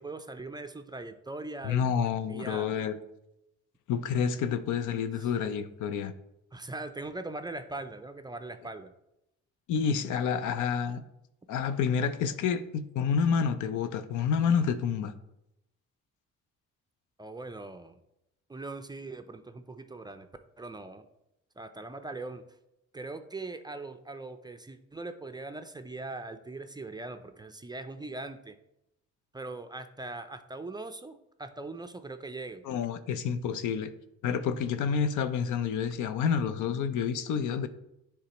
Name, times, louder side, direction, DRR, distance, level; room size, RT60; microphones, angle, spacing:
voice 1, 0.0-2.8 5.2-5.3 6.5-8.9 17.2-18.0 18.5-20.3 20.6-21.1 21.6-22.4 22.9-28.6 29.3-32.7, right 2 dB, 15° right, 8 dB, 0.4 m, -41 dB
voice 2, 1.6-2.9 3.9-6.1 9.7-11.0 11.5-15.1 32.6-33.9 34.2-37.7, left 7 dB, 80° left, 12 dB, 0.5 m, -29 dB
9.8 x 3.3 x 2.9 m, 0.85 s
cardioid pair, 90°, 30 cm